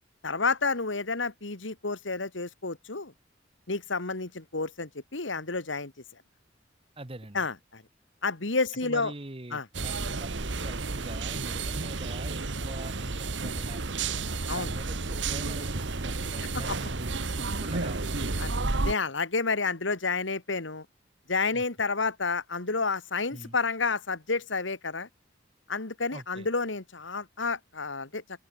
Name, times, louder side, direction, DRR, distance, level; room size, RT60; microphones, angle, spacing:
voice 1, 0.2-3.1 3.7-5.9 7.3-7.8 8.2-9.1 9.5-9.7 14.5-14.7 16.7-16.8 18.4-18.5 18.8-20.9 21.3-25.1 25.7-28.2, left 4 dB, 85° left, 2.2 m, -30 dB
voice 2, 7.0-7.4 8.8-14.2 14.5-18.0 21.5-21.6 23.3-23.6 26.1-26.5, right 1 dB, 30° right, 1.4 m, -43 dB
sound 1, 9.7-18.9, right 3 dB, 75° right, 1.5 m, -31 dB
open air
head